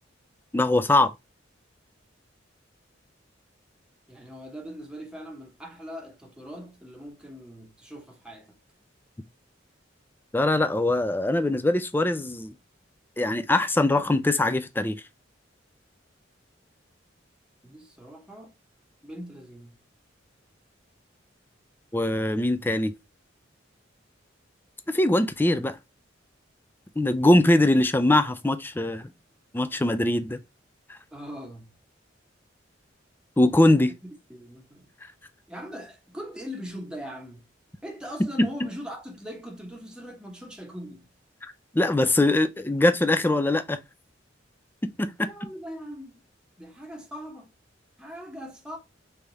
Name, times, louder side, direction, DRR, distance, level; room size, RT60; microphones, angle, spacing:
voice 1, 0.5-1.1 10.3-12.5 13.2-15.0 21.9-22.9 24.9-25.8 27.0-29.1 29.5-30.4 30.9-31.0 33.4-33.9 38.4-38.5 41.7-43.8 44.8-45.3, left 1 dB, 10° left, 0.4 m, -22 dB
voice 2, 4.1-8.6 17.6-18.5 19.0-19.8 31.1-31.7 33.9-34.9 35.5-37.5 37.8-41.1 45.2-46.2 46.6-47.5 48.0-48.8, equal, 5° right, 1.0 m, -41 dB
3.5 x 3.5 x 4.0 m
head